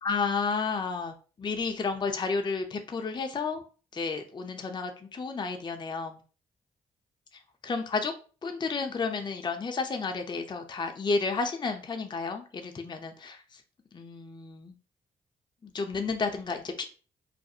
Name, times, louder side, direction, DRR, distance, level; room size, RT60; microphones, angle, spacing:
voice 1, 0.0-3.6 3.9-6.2 7.6-8.1 8.4-13.6 13.9-14.7 15.6-16.8, left 4 dB, 30° left, 0.4 m, -31 dB
2.4 x 2.0 x 2.7 m
hypercardioid pair, 45°, 16 cm